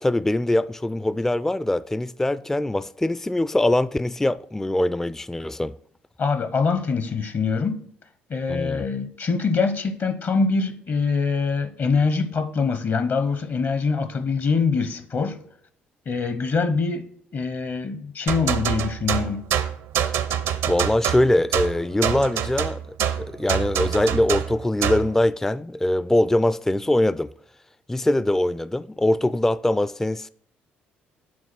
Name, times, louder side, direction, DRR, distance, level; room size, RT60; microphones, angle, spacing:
voice 1, 0.0-5.7 8.5-8.8 20.7-27.3 27.9-30.3, left 1 dB, 10° left, 0.3 m, -22 dB
voice 2, 6.2-7.8 8.3-15.4 16.1-17.1 17.3-19.5, left 4 dB, 50° left, 0.8 m, -24 dB
sound 1, 18.3-25.1, right 9 dB, 70° right, 0.6 m, -25 dB
7.7 x 3.9 x 6.0 m
hypercardioid pair, 50°, 5 cm